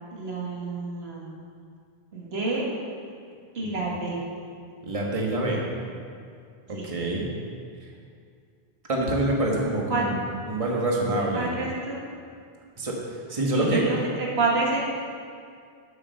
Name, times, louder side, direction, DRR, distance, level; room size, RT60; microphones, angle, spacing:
voice 1, 0.1-1.3 2.1-2.7 3.5-4.2 6.8-6.9 9.9-10.1 11.3-12.0 13.5-14.8, right 3 dB, 80° right, -3 dB, 1.9 m, -28 dB
voice 2, 4.8-5.6 6.7-7.3 8.9-10.2 10.5-11.5 12.8-13.8, right 1 dB, 35° right, -2 dB, 1.4 m, -26 dB
8.5 x 7.2 x 6.5 m, 2.3 s
omnidirectional pair, 1.0 m